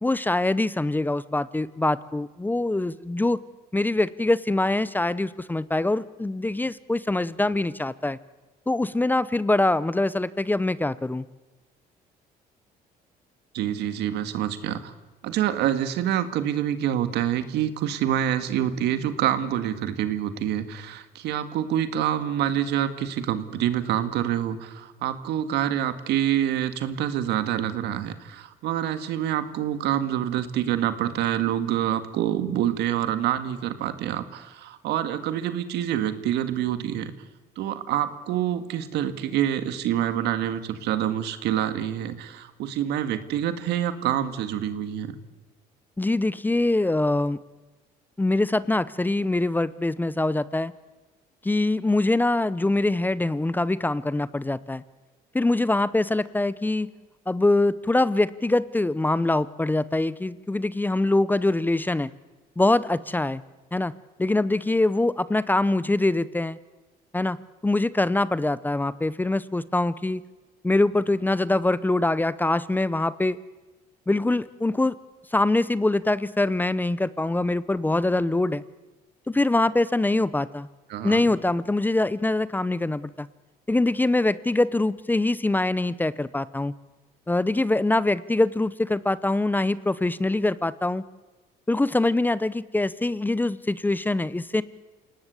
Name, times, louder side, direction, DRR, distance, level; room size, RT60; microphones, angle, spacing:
voice 1, 0.0-3.4 3.7-8.2 8.7-11.2 46.0-47.4 48.2-50.7 51.4-54.8 55.3-56.9 57.3-62.1 62.6-63.4 63.7-63.9 64.2-66.6 67.1-67.4 67.6-70.2 70.6-73.4 74.1-75.0 75.3-78.6 79.3-80.7 81.0-83.3 83.7-86.7 87.3-91.0 91.7-94.6, left 2 dB, 10° left, 18 dB, 0.7 m, -24 dB
voice 2, 13.5-14.9 15.2-37.1 37.6-45.1 80.9-81.3, right 11 dB, 80° right, 11 dB, 1.9 m, -26 dB
28.0 x 18.5 x 8.3 m, 1.2 s
cardioid pair, 110°, 17 cm